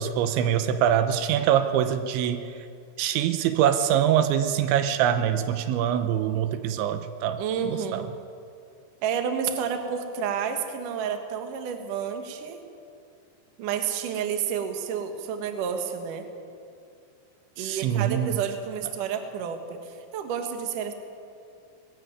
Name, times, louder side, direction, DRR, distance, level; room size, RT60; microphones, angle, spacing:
voice 1, 0.0-2.7 3.0-8.1 17.6-18.4, right 9 dB, 80° right, 10 dB, 3.1 m, -24 dB
voice 2, 7.4-8.1 9.0-12.6 13.6-16.3 17.6-20.9, right 7 dB, 60° right, 6 dB, 2.5 m, -30 dB
20.0 x 15.0 x 9.4 m, 2.4 s
omnidirectional pair, 5.3 m